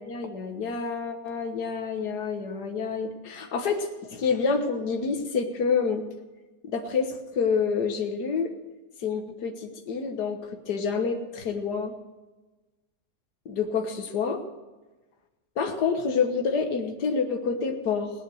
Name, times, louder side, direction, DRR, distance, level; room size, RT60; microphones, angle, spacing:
voice 1, 0.0-6.0 6.7-8.5 9.0-10.4 10.7-11.9 13.5-14.4 15.6-18.1, left 5 dB, 75° left, 4 dB, 1.9 m, -28 dB
17.0 x 10.0 x 6.4 m, 1.2 s
omnidirectional pair, 1.7 m